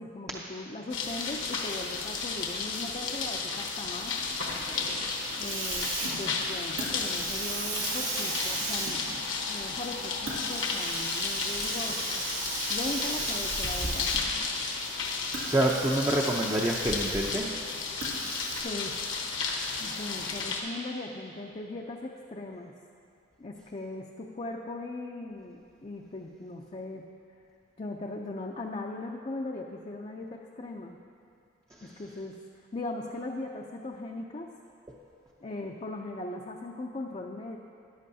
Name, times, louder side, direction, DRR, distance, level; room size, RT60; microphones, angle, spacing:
voice 1, 0.0-4.1 5.4-9.2 9.5-12.2 12.7-14.2 18.6-19.0 19.8-22.7 23.4-27.0 27.8-31.0 31.8-32.4 32.7-34.5 35.4-37.6, left 2 dB, 35° left, 0 dB, 0.5 m, -39 dB
sound 1, 0.9-20.6, left 4 dB, 75° left, 1.1 m, -33 dB
Hiss, 4.2-14.5 15.2-17.5 18.0-18.6, right 3 dB, 90° right, 2.2 m, -36 dB
voice 2, 15.4-17.4, right 1 dB, 15° right, -2 dB, 0.6 m, -26 dB
13.5 x 10.5 x 2.8 m, 2.6 s
head